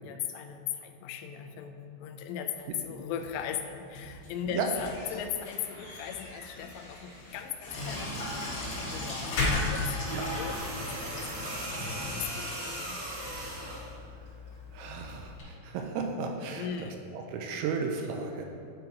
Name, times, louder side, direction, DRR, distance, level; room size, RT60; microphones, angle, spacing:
voice 1, 0.0-8.2 8.7-13.0 16.6-17.1, left 8 dB, 90° left, 6 dB, 3.1 m, -38 dB
sound 1, 2.5-15.2, left 3 dB, 60° left, 3.5 m, -39 dB
Sink (filling or washing), 7.6-15.4, left 1 dB, 45° left, 1.6 m, -39 dB
sound 2, 10.0-13.9 15.1-15.3, right 1 dB, 55° right, 2.6 m, -38 dB
voice 2, 14.7-16.9 17.1-18.5, right 5 dB, 85° right, 3 dB, 2.9 m, -34 dB
11.5 x 3.9 x 4.6 m, 2.5 s
omnidirectional pair, 5.6 m